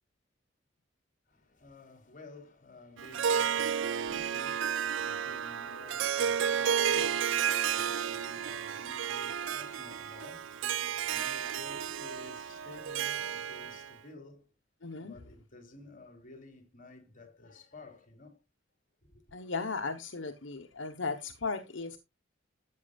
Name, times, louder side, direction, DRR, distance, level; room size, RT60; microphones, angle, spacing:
voice 1, 1.3-14.5 15.0-18.4 19.1-19.4, left 2 dB, 45° left, 3.3 m, -53 dB
Harp, 3.0-13.9, right 8 dB, 80° right, 0.4 m, -32 dB
voice 2, 14.8-15.1 19.3-22.0, left 4 dB, 75° left, 1.1 m, -36 dB
13.0 x 8.7 x 2.4 m
head